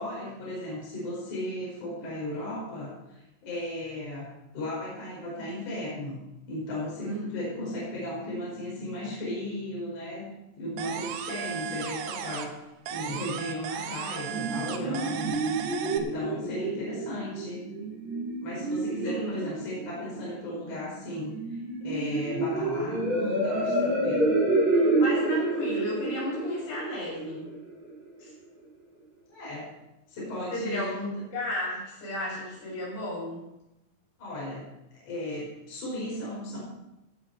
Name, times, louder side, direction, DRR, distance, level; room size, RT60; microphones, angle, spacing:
voice 1, 0.0-6.2 6.5-10.3 10.6-12.6 12.9-17.6 18.4-24.3 29.3-29.7 30.1-31.2 34.2-36.6, left 1 dB, 45° left, -5 dB, 6.0 m, -36 dB
sound 1, 10.8-12.6 12.9-16.0, right 8 dB, 75° right, 3.0 m, -36 dB
sound 2, 13.9-27.9, right 2 dB, 40° right, 5.1 m, -29 dB
voice 2, 19.0-19.3 25.0-27.4 28.2-28.3 30.5-31.1 31.3-33.4, equal, 75° left, -6 dB, 8.8 m, -33 dB
17.5 x 7.0 x 6.4 m, 0.91 s
omnidirectional pair, 5.1 m